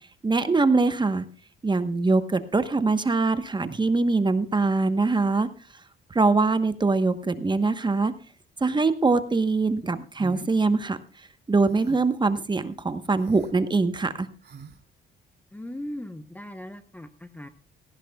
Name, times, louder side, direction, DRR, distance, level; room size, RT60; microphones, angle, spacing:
voice 1, 0.2-1.2 1.6-5.5 6.1-8.1 8.6-11.0 11.5-14.3, right 3 dB, 25° right, 11 dB, 1.1 m, -23 dB
sound 1, 10.2-10.5 11.6-12.2 13.1-13.5 14.4-14.8, right 5 dB, 55° right, 2.5 m, -43 dB
voice 2, 15.5-17.5, left 1 dB, 10° left, 10 dB, 0.8 m, -38 dB
17.5 x 15.0 x 2.3 m, 0.38 s
cardioid pair, 90°, 20 cm